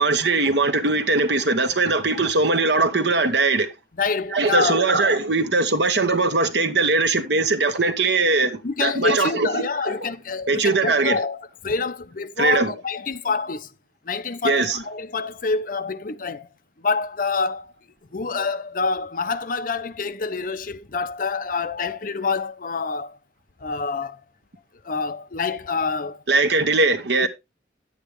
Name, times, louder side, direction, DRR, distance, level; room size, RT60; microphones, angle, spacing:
voice 1, 0.0-3.7 4.3-9.9 10.5-11.2 12.4-12.7 14.4-14.8 26.3-27.3, right 3 dB, 75° right, 1.3 m, -20 dB
voice 2, 4.0-4.9 8.6-13.7 14.1-16.5 16.8-17.7 18.1-23.2 23.6-24.2 24.8-26.2 27.2-27.3, left 4 dB, 50° left, 0.7 m, -27 dB
10.0 x 8.5 x 3.2 m
head